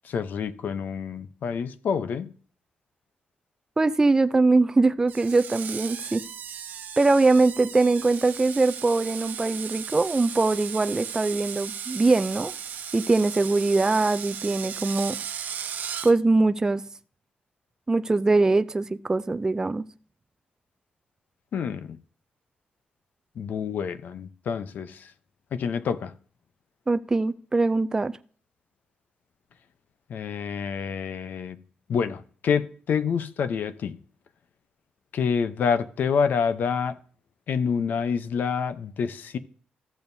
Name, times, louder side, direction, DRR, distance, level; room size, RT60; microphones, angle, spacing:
voice 1, 0.0-2.3 21.5-22.0 23.4-25.1 25.5-26.1 30.1-31.6 31.9-34.0 35.1-37.0 37.5-39.4, left 6 dB, 70° left, 0.7 m, -27 dB
voice 2, 3.8-6.2 7.0-12.5 12.9-15.2 16.0-16.8 17.9-19.8 26.9-28.1, right 3 dB, 20° right, 0.4 m, -22 dB
Screech, 5.1-16.1, right 8 dB, 75° right, 0.8 m, -36 dB
14.0 x 7.1 x 2.7 m
cardioid pair, 105°, 3 cm